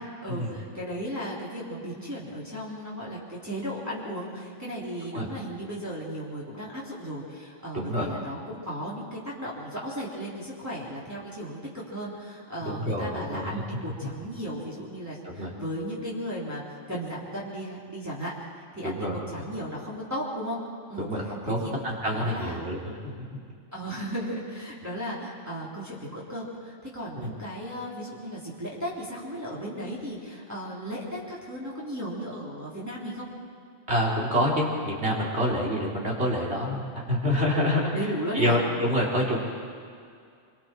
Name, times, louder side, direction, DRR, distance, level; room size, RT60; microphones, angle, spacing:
voice 1, 0.0-16.6 16.9-18.3 18.7-20.6 20.9-21.1 21.5-21.7 22.1-22.6 23.7-33.3 37.8-38.6, equal, 10° right, -8 dB, 3.6 m, -35 dB
voice 2, 7.7-8.1 12.6-13.6 15.2-15.5 18.8-19.3 21.0-21.6 21.8-23.3 27.2-27.3 33.9-37.9 38.3-39.4, equal, 55° right, -3 dB, 3.8 m, -27 dB
25.5 x 25.0 x 4.5 m, 2.3 s
omnidirectional pair, 1.3 m